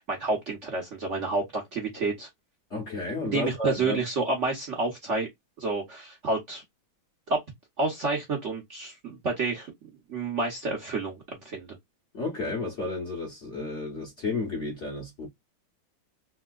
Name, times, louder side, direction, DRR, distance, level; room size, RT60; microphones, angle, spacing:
voice 1, 0.1-2.3 3.3-5.3 5.6-6.6 7.3-7.4 7.8-9.7 10.1-11.8, right 3 dB, 50° right, 1.0 m, -29 dB
voice 2, 2.7-4.0 12.1-15.3, left 2 dB, 45° left, 1.0 m, -32 dB
3.5 x 2.7 x 2.3 m
omnidirectional pair, 2.1 m